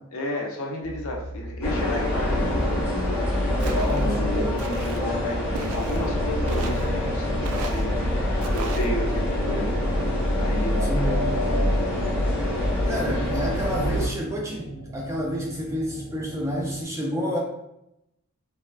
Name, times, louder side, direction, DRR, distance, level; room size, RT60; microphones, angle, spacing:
voice 1, 0.1-2.8 3.6-9.8 10.3-13.5, left 1 dB, 65° left, 0 dB, 0.6 m, -32 dB
sound 1, 0.8-16.8, equal, 90° left, 1.1 m, -41 dB
sound 2, 1.6-14.1, left 1 dB, 10° left, 0.8 m, -25 dB
Walk footsteps, 3.6-4.0 4.6-5.0 5.5-6.1 6.5-6.9 7.4-7.9 8.4-8.9, right 5 dB, 80° right, 0.3 m, -37 dB
voice 2, 3.9-4.4 10.9-11.3 12.8-17.4, equal, 15° right, -2 dB, 0.4 m, -29 dB
3.3 x 2.3 x 2.2 m, 0.83 s
head